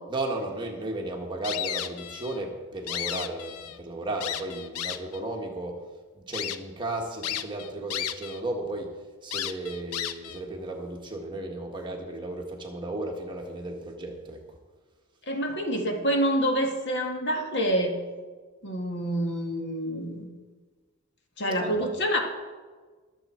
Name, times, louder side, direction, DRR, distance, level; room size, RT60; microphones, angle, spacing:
voice 1, 0.1-5.8 6.1-9.0 9.2-14.4 21.6-21.9, right 2 dB, 20° right, 1 dB, 1.6 m, -34 dB
sound 1, 1.4-2.4 2.7-3.8 4.2-5.2 5.8-5.9 6.3-6.6 7.2-8.4 8.7-8.8 9.3-10.4, left 10 dB, 85° left, 0.7 m, -33 dB
voice 2, 15.3-18.0 18.6-20.2 21.4-22.2, equal, 55° left, 2 dB, 1.8 m, -27 dB
22.0 x 7.4 x 4.5 m, 1.4 s
head